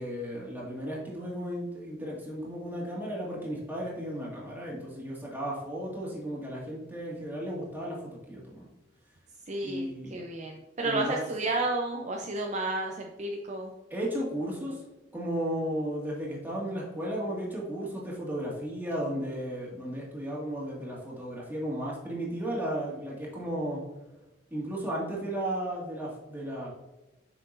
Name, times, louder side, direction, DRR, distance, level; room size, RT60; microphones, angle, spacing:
voice 1, 0.0-8.7 9.6-10.2 10.8-11.2 13.9-14.8 15.1-23.8 24.5-26.7, right 1 dB, 10° right, -5 dB, 2.0 m, -34 dB
voice 2, 9.5-13.7, right 2 dB, 40° right, 0 dB, 0.6 m, -32 dB
7.6 x 5.9 x 2.6 m, 1.0 s
head